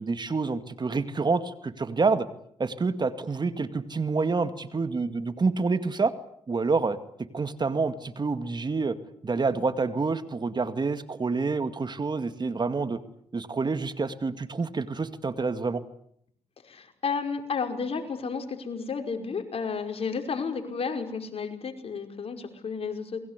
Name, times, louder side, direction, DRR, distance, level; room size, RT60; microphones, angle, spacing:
voice 1, 0.0-2.3 2.6-6.1 6.5-7.0 7.3-9.0 9.2-13.0 13.3-15.8, right 4 dB, 40° right, 11 dB, 2.2 m, -27 dB
voice 2, 16.7-23.2, left 5 dB, 55° left, 5 dB, 5.3 m, -32 dB
28.5 x 22.0 x 8.3 m, 0.70 s
cardioid pair, 65°, 12 cm